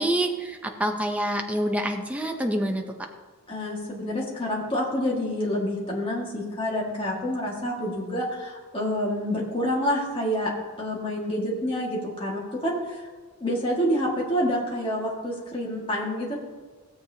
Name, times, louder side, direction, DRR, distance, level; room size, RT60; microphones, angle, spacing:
voice 1, 0.0-3.1, right 1 dB, 5° right, 3 dB, 0.6 m, -27 dB
voice 2, 3.5-10.5 10.8-13.1 13.4-16.3, equal, 25° left, -4 dB, 1.9 m, -28 dB
16.5 x 7.7 x 2.8 m, 1.4 s
head